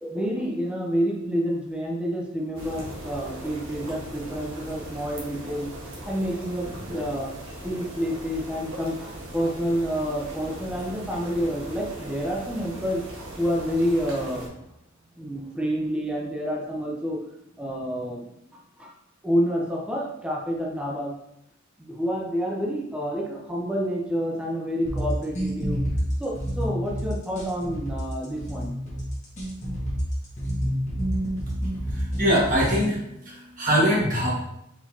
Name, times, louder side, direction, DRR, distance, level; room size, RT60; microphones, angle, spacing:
voice 1, 0.0-5.7 6.1-7.3 7.6-13.0 13.4-14.5 15.2-17.2 17.6-18.9 19.2-21.2 21.8-25.8 26.2-28.7, equal, 5° right, -2 dB, 0.5 m, -28 dB
sound 1, 2.5-14.5, right 1 dB, 85° right, 1.3 m, -39 dB
sound 2, 24.9-32.9, equal, 35° left, 1.4 m, -28 dB
voice 2, 31.9-33.0 33.2-34.3, equal, 40° right, -6 dB, 1.7 m, -22 dB
4.6 x 3.9 x 2.7 m, 0.82 s
head